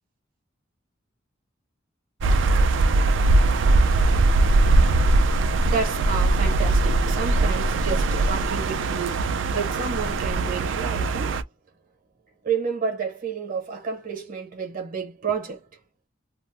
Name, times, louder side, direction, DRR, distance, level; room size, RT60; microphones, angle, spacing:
sound 1, 2.2-11.4, right 2 dB, 65° right, 0.4 m, -20 dB
voice 1, 5.4-11.4 12.4-15.6, right 5 dB, 45° right, 0.9 m, -30 dB
2.5 x 2.0 x 3.2 m
head